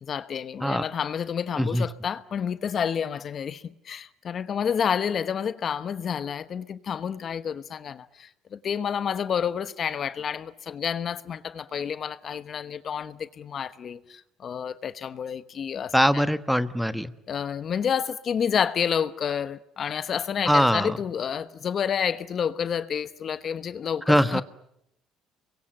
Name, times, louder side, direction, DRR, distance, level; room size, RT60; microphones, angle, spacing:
voice 1, 0.0-16.2 17.3-24.4, left 7 dB, 45° left, 1.1 m, -29 dB
voice 2, 15.9-17.1 20.5-21.0 24.1-24.4, equal, ahead, 1.2 m, -22 dB
27.5 x 23.0 x 9.0 m
cardioid pair, 105°, 0 cm